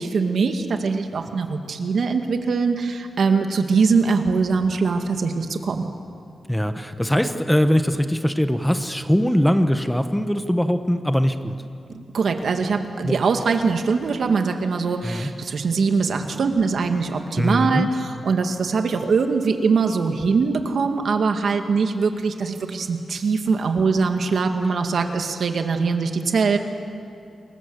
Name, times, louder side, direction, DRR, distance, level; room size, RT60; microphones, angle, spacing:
voice 1, 0.0-5.9 11.9-26.6, right 4 dB, 65° right, 5 dB, 2.1 m, -22 dB
voice 2, 6.5-11.6 13.0-13.2 15.0-15.3 17.4-17.9, equal, 5° left, 8 dB, 1.1 m, -21 dB
28.5 x 21.0 x 8.1 m, 2.4 s
wide cardioid pair, 115°, 0 cm